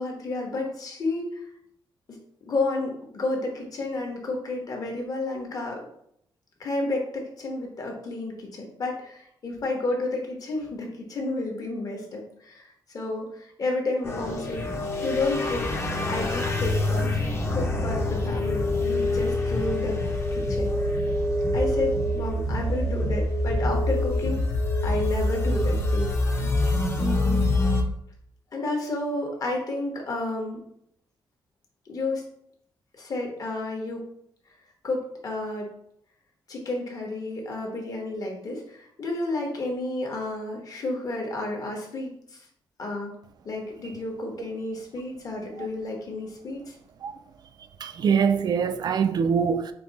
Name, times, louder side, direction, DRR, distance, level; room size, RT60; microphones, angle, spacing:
voice 1, 0.0-1.4 2.1-5.9 6.6-12.7 12.9-14.6 15.0-15.6 16.1-20.0 20.3-21.0 21.5-24.4 24.8-26.4 27.0-27.4 28.5-30.6 31.9-32.2 32.9-34.0 34.8-35.7 36.5-42.4 42.8-43.1 43.4-46.7, left 2 dB, 45° left, 1.2 m, -31 dB
sound 1, 14.0-27.8, left 1 dB, 30° left, 0.8 m, -25 dB
voice 2, 47.8-49.7, right 6 dB, 55° right, 0.4 m, -23 dB
4.5 x 2.7 x 4.0 m
cardioid pair, 125°, 8 cm